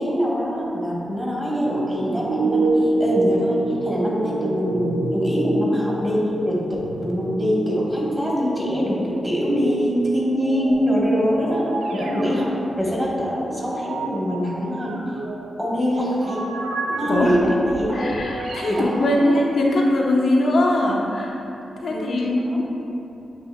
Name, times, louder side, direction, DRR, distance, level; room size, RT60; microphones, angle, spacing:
voice 1, 0.0-6.6 7.0-15.0 15.6-16.4 17.0-18.1 18.6-19.3 21.9-22.6, equal, 15° right, -5 dB, 1.2 m, -24 dB
sound 1, 1.6-8.8 9.3-18.8, right 2 dB, 85° right, 0.3 m, -28 dB
voice 2, 17.0-17.3 17.9-21.4 21.8-22.7, left 1 dB, 65° left, -2 dB, 0.5 m, -21 dB
7.1 x 2.8 x 2.3 m, 2.9 s
cardioid pair, 65°, 0 cm